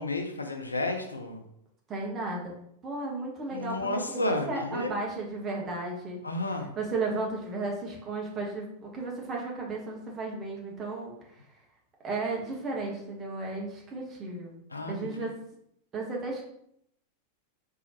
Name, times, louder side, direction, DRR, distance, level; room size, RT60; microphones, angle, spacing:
voice 1, 0.0-1.4 3.5-4.9 6.2-6.7 14.7-15.3, left 2 dB, 80° left, 5 dB, 0.5 m, -32 dB
voice 2, 1.9-2.5 2.8-6.2 6.8-11.6 12.0-14.6 14.9-15.4 15.9-16.5, right 3 dB, 25° right, -1 dB, 1.3 m, -34 dB
4.2 x 3.6 x 2.9 m, 0.73 s
figure-of-eight pair, 90°, 0 cm